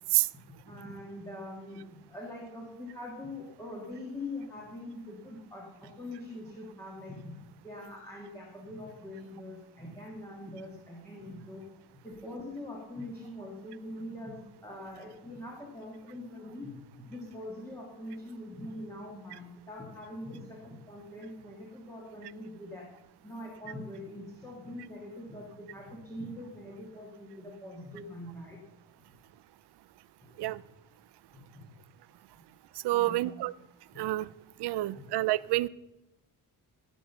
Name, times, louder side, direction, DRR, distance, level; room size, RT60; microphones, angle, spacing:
voice 1, 0.7-7.3 7.6-11.7 12.0-16.7 17.0-22.9 23.2-28.6 30.2-30.5 31.3-31.7 32.9-33.3 33.9-34.1 34.9-35.0, left 1 dB, 10° left, -3 dB, 1.9 m, -43 dB
voice 2, 32.8-33.5 34.0-34.3 34.6-35.7, right 17 dB, 80° right, 20 dB, 0.5 m, -28 dB
16.0 x 6.3 x 6.9 m, 0.96 s
wide cardioid pair, 160°, 39 cm